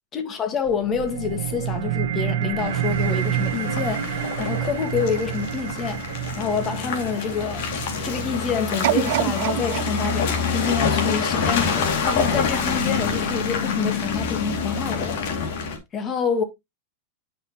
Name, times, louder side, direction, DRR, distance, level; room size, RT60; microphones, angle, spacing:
voice 1, 0.1-7.7 8.0-15.5 15.9-16.4, left 6 dB, 25° left, 1.6 m, -27 dB
sound 1, 0.6-11.6, right 12 dB, 85° right, 0.9 m, -30 dB
Car passing by / Engine, 2.6-15.8, left 5 dB, 65° left, 2.2 m, -26 dB
sound 2, 8.8-11.9 12.4-12.5, right 16 dB, 70° right, 0.3 m, -27 dB
8.7 x 5.7 x 2.9 m
supercardioid pair, 135°, 0 cm